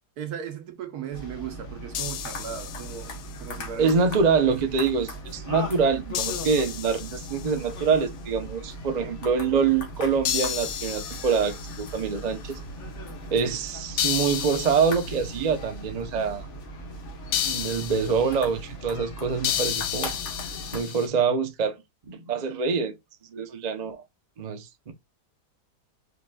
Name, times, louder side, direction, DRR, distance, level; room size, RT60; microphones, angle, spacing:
voice 1, 0.2-3.9, right 8 dB, 65° right, 1.3 m, -37 dB
sound 1, 1.1-20.8, equal, 45° left, 1.4 m, -38 dB
sound 2, 1.9-3.4 6.1-7.7 10.2-12.1 14.0-15.4 17.3-18.3 19.4-21.1, left 10 dB, 75° left, 1.2 m, -31 dB
voice 2, 3.8-12.6 13.3-16.5 17.4-20.2 20.7-21.8 22.1-22.9 23.3-24.0 24.4-24.9, right 5 dB, 45° right, 0.6 m, -25 dB
4.9 x 3.9 x 2.3 m
omnidirectional pair, 1.8 m